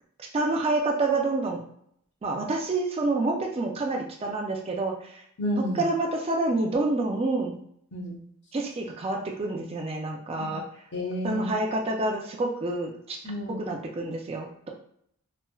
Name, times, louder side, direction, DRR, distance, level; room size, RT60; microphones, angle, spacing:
voice 1, 0.3-1.6 2.2-5.2 5.7-7.6 8.5-10.6 11.2-13.2 13.6-14.7, right 2 dB, 25° right, 1 dB, 0.3 m, -28 dB
voice 2, 5.4-5.8 7.9-8.2 10.4-10.6 10.9-11.5 13.2-13.7, left 1 dB, 55° left, -1 dB, 0.7 m, -31 dB
4.2 x 2.0 x 2.3 m, 0.69 s
head